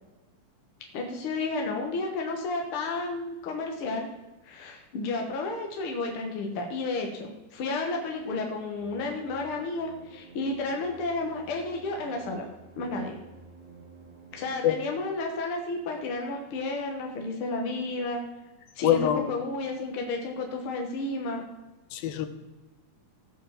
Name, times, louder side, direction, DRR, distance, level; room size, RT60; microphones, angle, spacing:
voice 1, 0.9-4.1 4.4-12.4 12.8-13.2 14.3-18.2 18.7-21.4, left 3 dB, 65° left, 2 dB, 1.4 m, -32 dB
sound 1, 8.8-14.6, right 4 dB, 75° right, 5.2 m, -51 dB
voice 2, 18.8-19.3 21.9-22.3, left 11 dB, 80° left, 9 dB, 2.7 m, -24 dB
15.5 x 5.4 x 7.3 m, 1.1 s
omnidirectional pair, 4.3 m